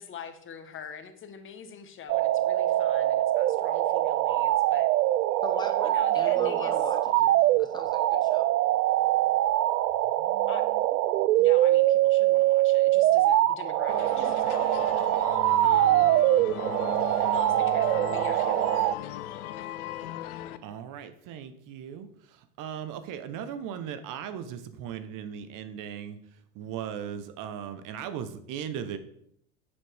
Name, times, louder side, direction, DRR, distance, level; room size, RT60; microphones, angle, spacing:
voice 1, 0.0-4.9 5.8-6.8 10.5-10.8 11.4-15.0 15.6-16.1 17.3-18.7, left 7 dB, 25° left, 9 dB, 1.2 m, -43 dB
sound 1, 2.1-19.0, right 15 dB, 80° right, 0.6 m, -23 dB
voice 2, 5.4-8.5, left 2 dB, 10° left, 6 dB, 1.3 m, -39 dB
sound 2, 13.9-20.6, left 12 dB, 70° left, 0.9 m, -37 dB
voice 3, 20.6-26.2 26.5-29.0, right 8 dB, 40° right, 10 dB, 1.0 m, -38 dB
9.9 x 7.1 x 3.5 m, 0.71 s
hypercardioid pair, 100°, 46 cm